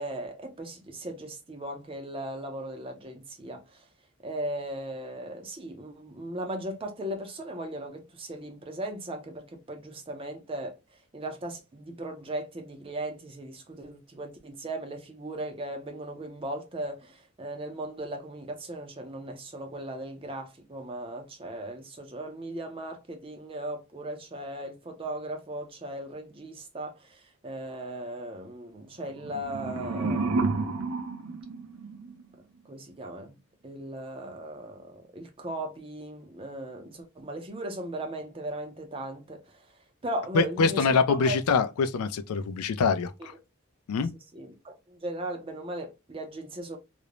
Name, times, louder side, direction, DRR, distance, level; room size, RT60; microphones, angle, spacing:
voice 1, 0.0-3.8 4.2-10.8 11.1-30.8 32.7-33.4 33.6-39.6 40.0-41.4 43.2-43.3 44.3-46.8, right 1 dB, 25° right, 0.5 m, -37 dB
sound 1, 29.1-32.2, right 3 dB, 75° right, 0.5 m, -30 dB
voice 2, 40.3-43.1 43.9-44.1, left 5 dB, 85° left, 0.4 m, -24 dB
2.4 x 2.0 x 2.9 m
head